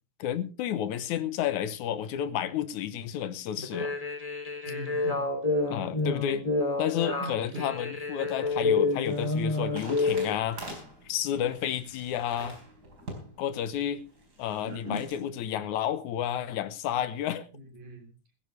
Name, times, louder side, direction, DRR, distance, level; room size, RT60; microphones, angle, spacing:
voice 1, 0.2-3.9 5.7-6.4 6.8-12.6 13.4-14.0 14.4-17.5, left 10 dB, 80° left, 2.4 m, -31 dB
sound 1, 3.6-10.3, left 3 dB, 10° left, 2.5 m, -29 dB
voice 2, 4.6-5.3 7.2-7.7 14.6-15.1 17.5-18.1, equal, 65° right, 4.5 m, -40 dB
sound 2, 8.0-15.2, right 1 dB, 30° right, 4.7 m, -47 dB
17.0 x 15.0 x 3.3 m
omnidirectional pair, 3.4 m